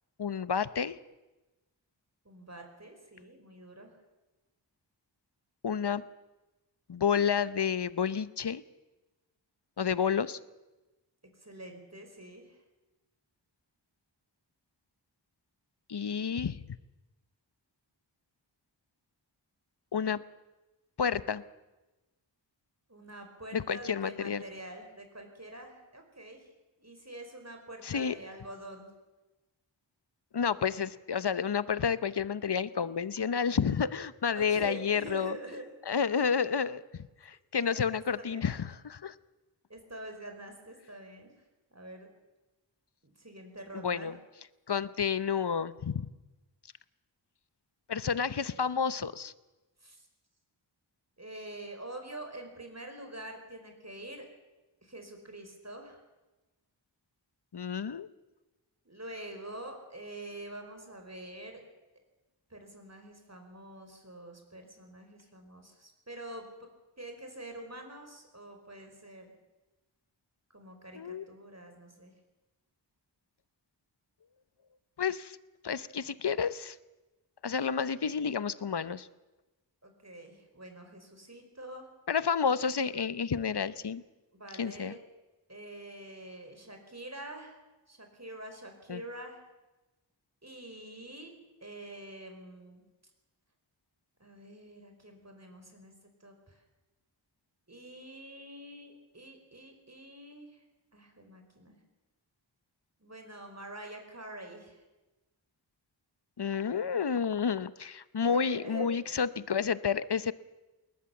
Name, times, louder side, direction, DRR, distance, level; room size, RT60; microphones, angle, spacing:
voice 1, 0.2-1.0 5.6-6.0 6.9-8.6 9.8-10.4 15.9-16.8 19.9-20.2 21.0-21.4 23.5-24.4 27.8-28.2 30.3-35.4 35.9-36.8 37.2-39.1 43.7-44.2 44.7-46.1 47.9-49.3 57.5-58.1 70.9-71.2 75.0-75.4 75.6-76.8 77.4-79.1 82.1-84.0 84.6-85.0 88.9-89.0 106.4-110.3, left 6 dB, 60° left, 16 dB, 0.8 m, -30 dB
voice 2, 2.2-3.9 11.4-12.6 22.9-26.5 26.8-28.9 34.3-35.6 36.1-36.2 37.5-38.0 38.3-38.5 39.7-41.3 41.7-42.1 43.0-44.1 49.8-50.1 51.2-54.3 54.8-56.0 58.8-61.6 62.5-66.5 67.0-69.3 70.5-72.1 79.8-81.9 84.3-85.0 85.5-87.6 87.9-89.4 90.4-92.8 94.2-95.9 96.2-96.6 97.7-100.6 100.9-101.8 103.0-104.8 108.2-108.9, right 1 dB, 35° right, 4 dB, 4.8 m, -46 dB
21.0 x 19.5 x 7.2 m, 1.1 s
wide cardioid pair, 40°, 44 cm